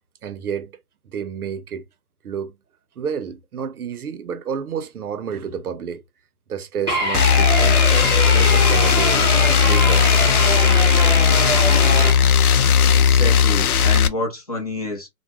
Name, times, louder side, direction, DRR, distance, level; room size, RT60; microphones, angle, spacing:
voice 1, 0.2-0.7 1.0-1.8 2.2-2.5 3.0-6.0 6.5-10.1, right 7 dB, 80° right, 0.7 m, -30 dB
sound 1, 6.9-12.1, equal, 20° right, 0.5 m, -23 dB
sound 2, 7.1-14.1, left 7 dB, 80° left, 0.5 m, -16 dB
voice 2, 12.9-15.1, left 2 dB, 25° left, 0.6 m, -28 dB
2.3 x 2.1 x 2.9 m
hypercardioid pair, 160°, 44 cm